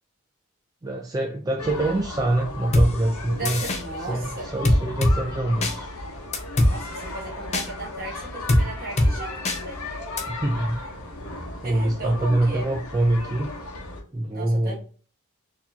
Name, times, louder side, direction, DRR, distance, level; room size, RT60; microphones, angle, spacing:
voice 1, 0.8-3.6 4.1-5.9 10.3-10.8 11.6-13.5 14.1-14.8, right 1 dB, 15° right, 1 dB, 0.3 m, -25 dB
sound 1, 1.6-14.0, left 2 dB, 80° left, 0.9 m, -36 dB
sound 2, 2.7-2.9 3.5-3.8 4.7-5.2 5.6-5.7 6.3-6.7 7.5-7.7 8.5-8.6 9.0-9.1 9.5-9.6 10.2-10.3, left 1 dB, 30° left, 0.6 m, -19 dB
voice 2, 3.4-4.5 6.6-9.8 11.6-12.7 14.3-14.8, right 2 dB, 40° right, -2 dB, 1.5 m, -36 dB
4.2 x 2.8 x 2.8 m, 0.41 s
head